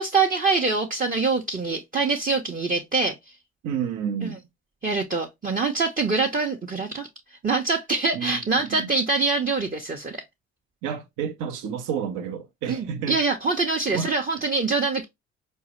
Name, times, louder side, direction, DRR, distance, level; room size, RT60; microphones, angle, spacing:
voice 1, 0.0-3.1 4.2-4.4 4.8-7.1 7.4-10.2 12.7-15.0, right 4 dB, 25° right, 0.7 m, -24 dB
voice 2, 3.6-4.4 8.1-8.9 10.8-13.2 13.9-14.1, right 7 dB, 65° right, 0.7 m, -30 dB
4.6 x 2.1 x 2.9 m
hypercardioid pair, 50°, 34 cm